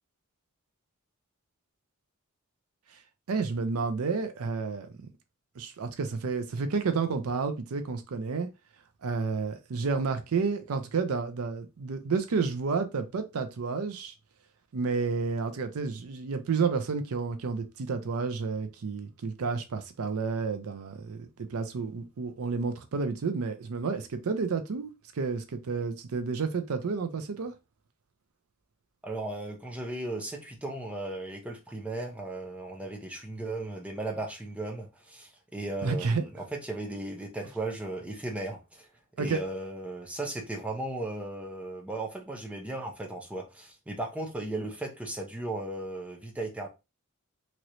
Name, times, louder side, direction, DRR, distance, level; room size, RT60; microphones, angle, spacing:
voice 1, 3.3-4.9 5.6-8.5 9.0-14.1 14.7-21.2 21.5-27.5 35.8-36.2 39.2-39.4, right 4 dB, 75° right, 0.5 m, -30 dB
voice 2, 29.0-38.9 39.2-46.7, right 2 dB, 5° right, 0.7 m, -36 dB
3.0 x 3.0 x 2.6 m
head